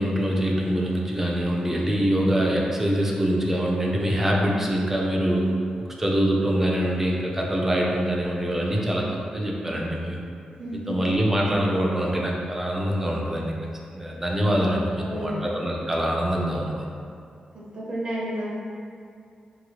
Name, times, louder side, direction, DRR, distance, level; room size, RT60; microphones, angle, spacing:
voice 1, 0.0-9.1 9.3-10.2 10.9-13.5 13.9-16.8, equal, 15° right, -2 dB, 0.3 m, -24 dB
voice 2, 10.6-11.0 15.0-15.4 17.5-18.4, equal, 45° right, -6 dB, 0.6 m, -32 dB
2.8 x 2.3 x 2.8 m, 2.4 s
wide cardioid pair, 160°, 3 cm